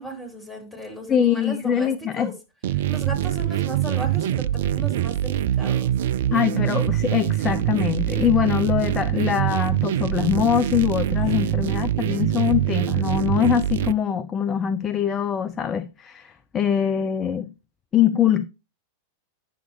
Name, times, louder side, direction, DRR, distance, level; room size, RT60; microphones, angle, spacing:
voice 1, 0.0-2.3 2.7-5.9 11.2-11.5, right 2 dB, 10° left, 3.5 m, -36 dB
voice 2, 1.1-2.3 6.3-17.5 17.9-18.5, left 9 dB, 25° left, 0.5 m, -23 dB
sound 1, 2.6-13.9, right 12 dB, 55° right, 0.3 m, -24 dB
9.5 x 7.1 x 2.9 m
figure-of-eight pair, 90°, 0 cm